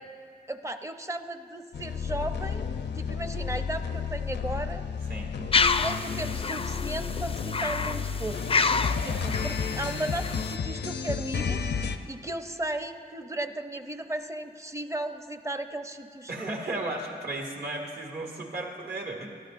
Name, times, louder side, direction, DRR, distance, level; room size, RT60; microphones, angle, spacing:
voice 1, 0.5-2.7 3.0-4.8 5.4-5.5 5.8-8.5 9.0-11.6 12.1-16.5, right 1 dB, 15° right, 8 dB, 0.6 m, -35 dB
sound 1, 1.7-12.0, left 6 dB, 85° left, 0.6 m, -32 dB
sound 2, 5.5-10.5, left 4 dB, 35° left, 0.4 m, -29 dB
voice 2, 16.3-19.3, right 2 dB, 70° right, 1 dB, 2.0 m, -34 dB
21.5 x 12.0 x 2.5 m, 2.2 s
wide cardioid pair, 95°, 17 cm